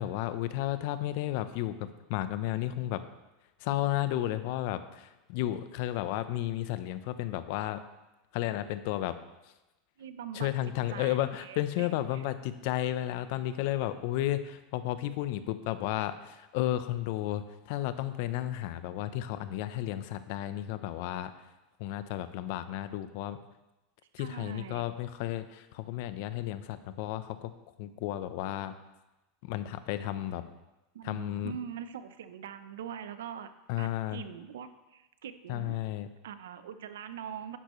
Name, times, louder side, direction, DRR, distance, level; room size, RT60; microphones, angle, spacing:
voice 1, 0.0-3.0 3.6-7.8 8.3-9.2 10.3-21.3 21.8-23.4 24.1-27.5 27.8-28.7 29.4-30.4 31.0-31.5 33.7-34.2 35.5-36.1, left 13 dB, 65° left, 12 dB, 0.7 m, -33 dB
voice 2, 10.0-10.5 10.9-12.2 24.2-24.9 30.9-33.5 33.8-35.8 36.2-37.6, right 8 dB, 90° right, 11 dB, 0.7 m, -43 dB
11.0 x 10.0 x 3.1 m, 1.0 s
supercardioid pair, 120°, 0 cm